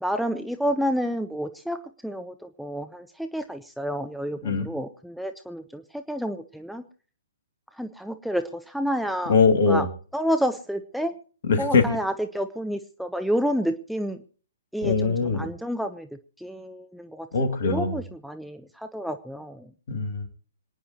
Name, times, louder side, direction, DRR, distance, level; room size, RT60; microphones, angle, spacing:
voice 1, 0.0-6.8 7.8-9.4 9.7-9.9 10.1-11.1 11.6-14.2 14.7-16.1 16.4-17.3 17.6-19.7, equal, ahead, 8 dB, 0.6 m, -29 dB
voice 2, 9.3-9.9 11.4-11.8 14.8-15.5 17.3-18.0 19.9-20.3, left 4 dB, 50° left, 8 dB, 2.5 m, -22 dB
26.5 x 9.9 x 3.0 m, 0.43 s
figure-of-eight pair, 120°, 0 cm